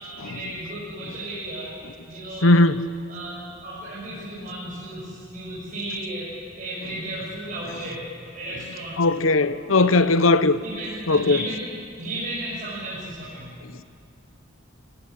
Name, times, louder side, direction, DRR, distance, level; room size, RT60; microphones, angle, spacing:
voice 1, 0.0-2.6 3.1-6.3 6.6-9.0 9.8-10.1 10.6-11.7 12.0-13.5, right 1 dB, 45° right, 7.2 m, -34 dB
voice 2, 2.4-2.8 9.0-10.6 11.1-11.4, left 2 dB, 85° left, 0.9 m, -18 dB
29.0 x 18.5 x 8.4 m
head